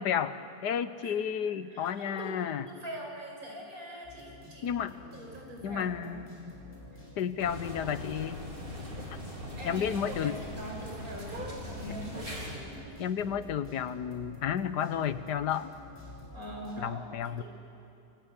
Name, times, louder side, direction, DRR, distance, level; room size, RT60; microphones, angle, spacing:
voice 1, 0.0-2.6 4.6-5.0 5.6-6.8 7.2-8.4 9.6-10.4 13.0-15.7 16.8-17.4, left 8 dB, 90° left, 12 dB, 1.6 m, -32 dB
voice 2, 1.7-4.7 5.1-6.2 9.6-13.0 16.3-17.0 17.4-17.5, right 1 dB, 60° right, 0 dB, 6.2 m, -43 dB
sound 1, 4.0-16.8, left 2 dB, 30° left, 6.9 m, -50 dB
sound 2, 7.4-12.6, equal, 30° right, 4.6 m, -40 dB
28.5 x 24.5 x 8.3 m, 2.8 s
omnidirectional pair, 1.7 m